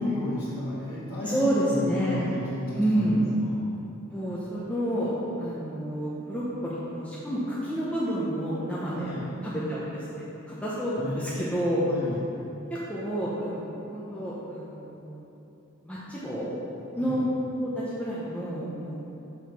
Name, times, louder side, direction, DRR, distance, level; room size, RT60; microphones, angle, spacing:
voice 1, 0.0-3.6 9.0-9.3 11.0-12.2 17.0-17.2, left 1 dB, 25° left, -13 dB, 1.5 m, -33 dB
voice 2, 1.3-2.1 2.7-3.2 4.1-9.1 9.4-10.2 10.6-11.8 12.7-15.2 15.8-16.5 16.9-17.2 17.6-19.0, right 1 dB, 5° left, -9 dB, 0.8 m, -29 dB
6.4 x 4.7 x 5.3 m, 2.9 s
head